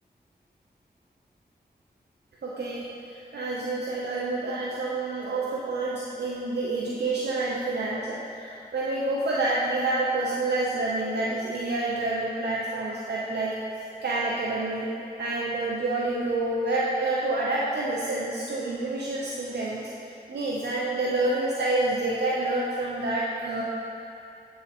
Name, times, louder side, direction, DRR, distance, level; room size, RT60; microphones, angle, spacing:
voice 1, 2.4-2.9 3.3-13.5 14.0-14.9 15.2-19.9 20.3-23.6, right 2 dB, 85° right, -5 dB, 0.6 m, -28 dB
8.1 x 3.7 x 4.2 m, 2.6 s
cardioid pair, 40°, 17 cm